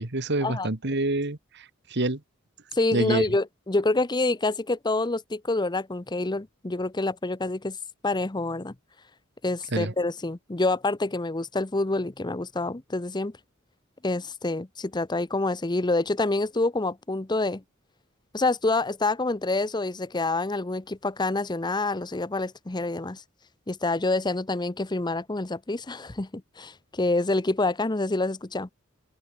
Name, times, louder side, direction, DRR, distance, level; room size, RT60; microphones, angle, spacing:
voice 1, 0.0-2.2 2.9-3.3 9.7-9.9, right 2 dB, 55° right, 2.0 m, -27 dB
voice 2, 2.7-7.8 8.0-8.7 9.4-13.3 14.0-17.6 18.3-23.2 23.7-28.7, left 2 dB, 20° left, 0.8 m, -27 dB
open air
head